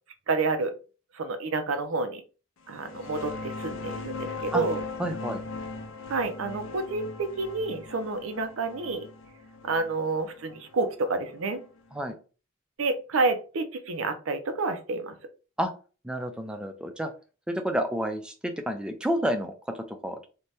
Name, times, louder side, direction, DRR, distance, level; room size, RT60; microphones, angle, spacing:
voice 1, 0.3-0.7 1.1-2.2 2.7-4.8 6.1-9.1 9.6-11.6 12.8-15.2, right 3 dB, 90° right, 9 dB, 0.5 m, -29 dB
sound 1, 2.7-12.0, left 3 dB, 70° left, 0.5 m, -39 dB
voice 2, 5.0-5.4 11.9-12.2 15.6-15.7 16.0-17.1 17.5-20.3, equal, 5° right, 5 dB, 0.3 m, -30 dB
2.7 x 2.2 x 3.2 m, 0.35 s
head